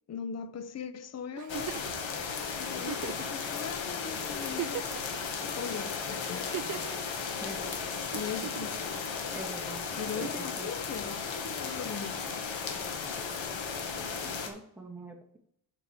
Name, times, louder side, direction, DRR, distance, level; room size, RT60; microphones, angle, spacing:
voice 1, 0.1-1.7 2.3-6.5 8.1-9.1 9.9-12.2, left 7 dB, 35° left, 0.7 m, -40 dB
Giggle, 1.4-2.0 2.8-3.3 3.9-4.0 4.4-5.2 6.3-7.0 8.1-8.8 10.1-10.5 12.0-12.1, right 11 dB, 40° right, 0.5 m, -38 dB
sound 1, 1.5-14.5, left 5 dB, 65° left, 2.0 m, -35 dB
voice 2, 7.4-8.1 8.4-8.5 9.3-9.9 10.1-10.7 14.2-15.4, right 1 dB, 5° right, 2.7 m, -44 dB
7.8 x 5.6 x 6.8 m
cardioid pair, 90°, 48 cm